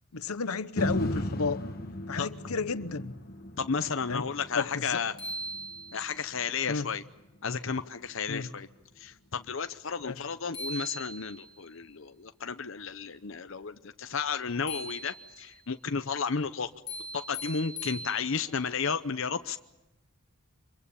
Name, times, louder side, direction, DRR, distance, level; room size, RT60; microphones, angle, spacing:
voice 1, 0.1-1.6 2.1-3.1 4.1-4.3 4.5-5.0 6.7-6.9 8.3-8.5 10.0-10.2, left 4 dB, 90° left, 0.9 m, -32 dB
sound 1, 0.8-8.9 9.4-9.5, left 1 dB, 45° left, 1.4 m, -38 dB
voice 2, 3.6-5.1 5.9-7.0 7.4-8.7 9.0-16.7 17.1-19.6, left 5 dB, 65° left, 0.7 m, -33 dB
sound 2, 4.7-4.8 5.2-6.3 10.2-10.3 10.5-11.6 14.7-15.6 16.9-18.6, equal, 20° left, 2.5 m, -40 dB
25.5 x 22.5 x 7.0 m
head